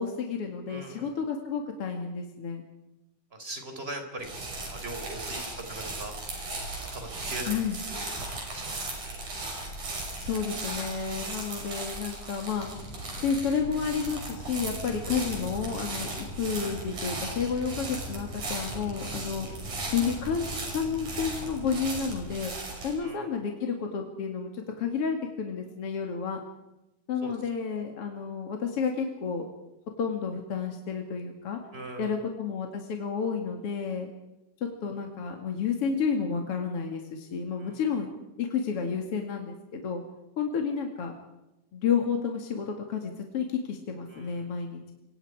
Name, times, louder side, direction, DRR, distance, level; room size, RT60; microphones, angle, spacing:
voice 1, 0.0-2.6 7.5-7.8 10.2-12.7 13.2-19.5 19.9-22.5 22.8-26.4 27.1-29.5 30.0-31.6 32.0-34.1 34.6-38.1 38.4-40.0 40.4-41.1 41.7-44.9, left 6 dB, 50° left, 3 dB, 2.8 m, -31 dB
voice 2, 0.7-1.1 3.3-6.1 6.9-7.6 7.9-9.2 10.0-10.3 15.0-15.1 22.9-23.3 27.2-27.3 31.7-32.2 37.6-37.8 44.1-44.5, right 2 dB, 20° right, 5 dB, 4.0 m, -41 dB
sound 1, 4.2-22.9, right 2 dB, 70° right, 7.5 m, -37 dB
sound 2, 12.6-22.4, equal, 20° left, 7.1 m, -42 dB
26.5 x 23.5 x 4.8 m, 0.94 s
omnidirectional pair, 3.7 m